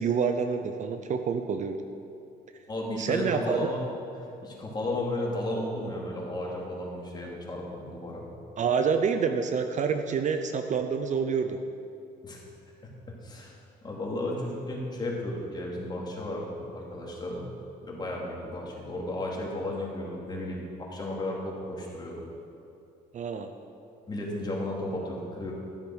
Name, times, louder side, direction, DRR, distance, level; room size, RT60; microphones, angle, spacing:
voice 1, 0.0-1.8 3.0-3.7 8.6-11.6 23.1-23.5, right 6 dB, 45° right, 7 dB, 0.7 m, -27 dB
voice 2, 2.7-3.8 4.2-8.3 12.2-12.4 12.8-12.9 13.2-17.5 17.8-22.2 24.1-25.5, left 1 dB, 25° left, -3 dB, 2.8 m, -34 dB
13.0 x 7.7 x 6.3 m, 2.7 s
cardioid pair, 110°, 17 cm